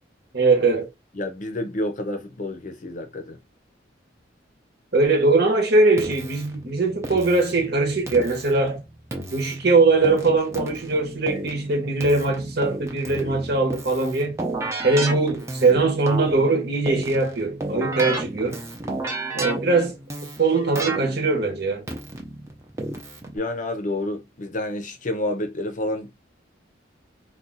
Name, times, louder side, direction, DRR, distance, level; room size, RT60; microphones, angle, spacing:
voice 1, 0.3-0.9 4.9-8.8 9.3-14.4 14.8-18.6 19.3-20.0 20.4-21.9, right 3 dB, 60° right, 1.0 m, -21 dB
voice 2, 1.1-3.4 23.3-26.2, left 1 dB, 45° left, 0.6 m, -29 dB
Keyboard (musical), 6.0-23.4, right 2 dB, 15° right, 0.6 m, -33 dB
2.6 x 2.3 x 3.8 m
head